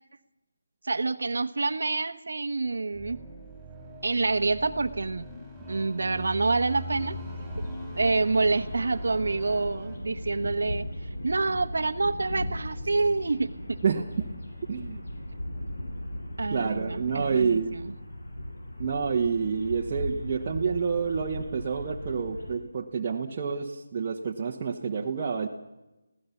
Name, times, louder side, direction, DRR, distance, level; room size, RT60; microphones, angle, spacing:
voice 1, 0.8-3.2 4.0-5.2 5.7-7.1 8.0-13.8 16.4-17.9, right 3 dB, 70° right, 10 dB, 1.0 m, -27 dB
sound 1, 2.9-10.0, right 1 dB, ahead, 5.3 m, -42 dB
Med Distant Thunder Birds with Light Traffic, 6.9-22.6, left 1 dB, 75° left, 7.1 m, -38 dB
voice 2, 14.7-15.0 16.5-17.7 18.8-25.5, right 6 dB, 25° right, -2 dB, 1.2 m, -28 dB
25.5 x 16.5 x 7.2 m, 1.0 s
figure-of-eight pair, 170°, 0 cm